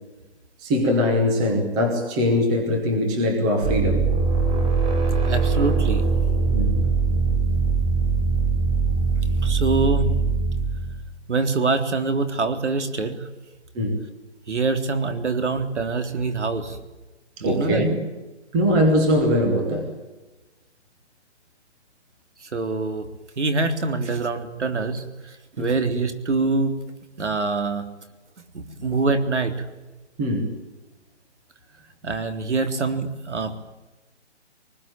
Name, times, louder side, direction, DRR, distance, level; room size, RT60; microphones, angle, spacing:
voice 1, 0.6-4.0 6.5-6.8 13.7-14.0 17.4-18.0 18.5-19.9 25.6-25.7 28.8-28.9 30.2-30.5, left 1 dB, 5° right, 4 dB, 0.9 m, -21 dB
sound 1, 3.6-11.0, right 4 dB, 40° right, 7.0 m, -22 dB
voice 2, 5.3-6.0 9.4-10.2 11.3-13.3 14.5-16.8 17.4-17.9 22.4-23.1 23.4-25.0 25.6-26.8 27.2-27.8 28.5-29.5 32.0-33.6, right 3 dB, 75° right, 7 dB, 3.7 m, -24 dB
24.0 x 20.0 x 9.0 m, 1.1 s
hypercardioid pair, 175°, 35 cm